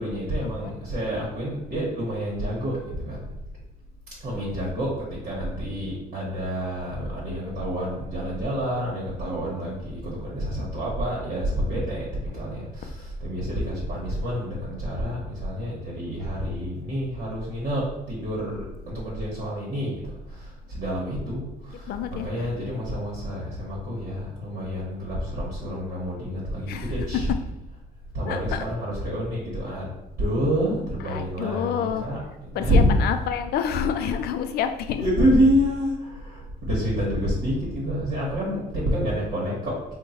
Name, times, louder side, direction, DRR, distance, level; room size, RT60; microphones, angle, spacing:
voice 1, 0.0-3.3 4.2-12.1 12.3-20.0 20.3-27.3 28.1-29.9 30.2-33.0 33.9-34.2 35.0-39.9, equal, 60° right, -6 dB, 1.3 m, -28 dB
voice 2, 21.9-22.6 26.7-27.4 28.3-28.7 31.0-32.1 32.5-35.1, left 8 dB, 70° left, 8 dB, 0.4 m, -28 dB
3.7 x 2.2 x 4.2 m, 0.90 s
cardioid pair, 110°, 17 cm